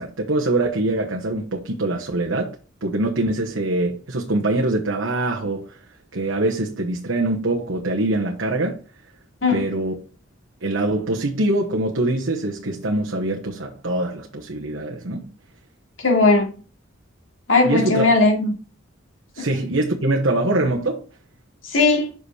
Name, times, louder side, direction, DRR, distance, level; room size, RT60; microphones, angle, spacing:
voice 1, 0.0-2.5 2.8-5.8 6.1-8.8 9.5-9.9 10.6-15.3 17.6-18.0 19.3-21.0, right 2 dB, 85° right, 1.1 m, -23 dB
voice 2, 16.0-16.5 17.5-18.6 19.4-19.5 21.6-22.1, left 3 dB, 85° left, 2.7 m, -18 dB
6.2 x 5.3 x 4.9 m
head